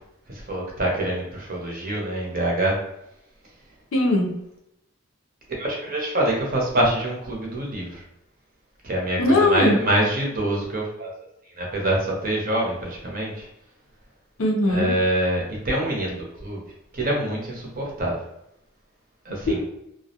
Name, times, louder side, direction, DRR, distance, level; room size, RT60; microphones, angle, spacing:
voice 1, 0.5-2.8 5.5-8.0 8.8-11.1 11.6-13.5 14.7-16.6 16.9-18.1 19.2-19.6, right 1 dB, 45° right, -2 dB, 0.7 m, -25 dB
voice 2, 3.9-4.4 9.2-9.8 14.4-15.0 19.5-19.6, left 1 dB, 70° left, 2 dB, 0.5 m, -20 dB
2.3 x 2.0 x 2.7 m, 0.81 s
head